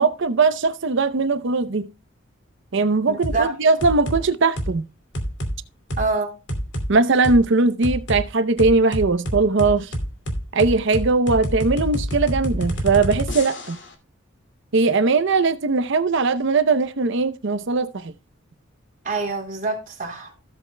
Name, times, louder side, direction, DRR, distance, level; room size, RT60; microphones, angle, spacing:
voice 1, 0.0-1.9 2.7-4.9 6.9-9.9 10.5-13.8 14.7-18.1, right 3 dB, 65° right, 0.7 m, -20 dB
voice 2, 3.1-3.5 6.0-6.3 19.0-20.3, right 3 dB, 40° right, 4.0 m, -25 dB
sound 1, 3.2-3.4 3.8-4.2 4.6-4.8 5.1-5.5 5.9-6.0 6.5-6.9 7.2-7.4 7.8-8.2 8.6-13.9, equal, 60° left, 2.5 m, -27 dB
15.0 x 8.0 x 2.2 m
head